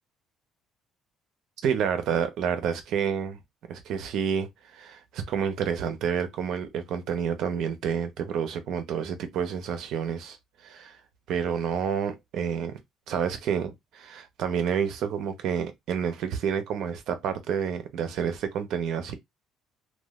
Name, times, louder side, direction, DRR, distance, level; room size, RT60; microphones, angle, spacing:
voice 1, 1.6-3.4 3.7-10.4 10.6-11.0 11.3-12.8 13.1-19.1, right 7 dB, 65° right, 0.7 m, -29 dB
3.1 x 2.3 x 2.3 m
cardioid pair, 135°, 0 cm